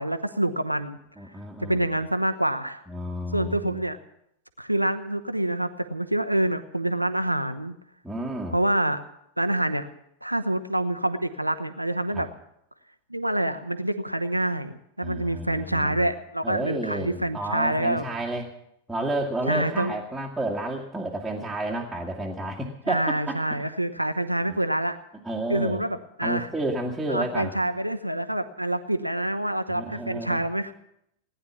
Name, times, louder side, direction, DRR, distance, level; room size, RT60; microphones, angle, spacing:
voice 1, 0.0-1.0 1.6-2.8 3.3-4.0 4.6-7.7 8.5-9.0 9.4-9.9 10.2-12.3 13.1-18.1 19.5-19.9 22.9-25.0 25.5-26.5 27.1-30.7, right 1 dB, 90° right, 10 dB, 1.0 m, -26 dB
voice 2, 1.2-1.8 2.9-3.8 8.0-8.6 12.1-12.2 15.0-16.0 16.4-18.5 18.9-23.4 24.5-24.6 25.2-25.8 26.2-27.6 29.7-30.4, right 1 dB, 5° right, -4 dB, 1.9 m, -31 dB
18.5 x 10.5 x 7.2 m, 0.76 s
figure-of-eight pair, 90°, 0 cm